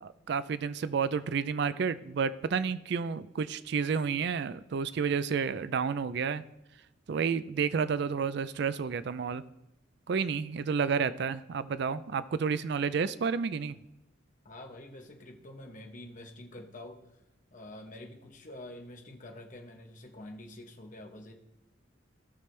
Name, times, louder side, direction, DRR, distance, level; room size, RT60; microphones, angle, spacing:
voice 1, 0.0-6.4 7.1-9.4 10.1-13.8, right 6 dB, 55° right, 14 dB, 0.4 m, -30 dB
voice 2, 14.4-17.2 17.5-21.3, left 1 dB, 40° left, 3 dB, 1.0 m, -47 dB
16.0 x 6.0 x 3.2 m, 0.89 s
head